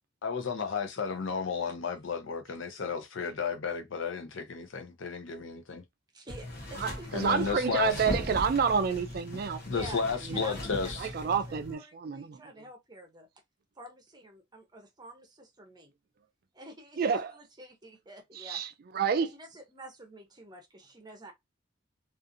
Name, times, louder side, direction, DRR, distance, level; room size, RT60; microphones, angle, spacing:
voice 1, 0.2-5.8 7.1-7.9 9.6-11.1, left 5 dB, 70° left, 0.6 m, -33 dB
voice 2, 6.1-8.0 9.7-13.3 13.8-15.9 16.5-17.1 17.3-18.6 19.3-21.3, right 1 dB, 20° right, 0.7 m, -49 dB
sound 1, 6.3-11.7, left 1 dB, 50° left, 0.9 m, -39 dB
voice 3, 6.8-9.6 10.3-10.4 11.0-12.4 17.0-17.4 18.4-18.7 18.9-19.3, right 6 dB, 50° right, 0.3 m, -29 dB
2.4 x 2.4 x 2.6 m
head